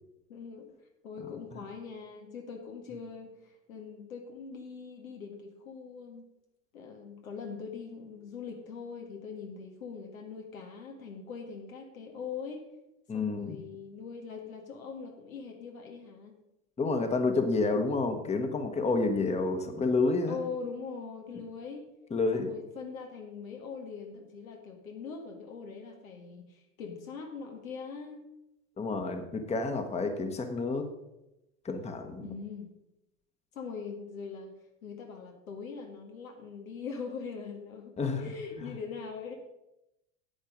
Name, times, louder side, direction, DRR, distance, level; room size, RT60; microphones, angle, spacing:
voice 1, 0.3-0.7 1.0-6.3 6.7-12.6 13.1-16.5 20.3-21.8 22.3-28.2 32.2-32.7 33.5-39.4, left 5 dB, 85° left, 1 dB, 1.8 m, -42 dB
voice 2, 13.1-13.6 16.8-20.4 22.1-22.5 28.8-30.9 31.6-32.3 38.0-38.2 38.6-38.7, left 3 dB, 15° left, 7 dB, 1.1 m, -29 dB
9.0 x 8.8 x 5.1 m, 0.90 s
hypercardioid pair, 100°, 40 cm